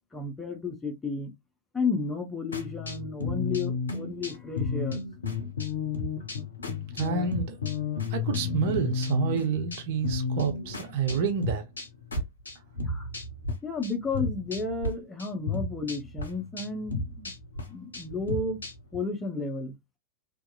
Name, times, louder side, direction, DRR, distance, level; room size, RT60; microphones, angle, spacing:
voice 1, 0.1-1.3 1.7-5.0 12.9-13.1 13.6-17.3 17.7-18.6 18.9-19.7, left 3 dB, 10° left, 0.7 m, -32 dB
sound 1, 2.5-13.5 13.8-14.9 15.2-19.0, left 4 dB, 75° left, 0.6 m, -32 dB
voice 2, 6.9-7.6 8.1-11.7, right 6 dB, 50° right, 0.7 m, -29 dB
2.8 x 2.4 x 2.3 m
figure-of-eight pair, 90°, 0 cm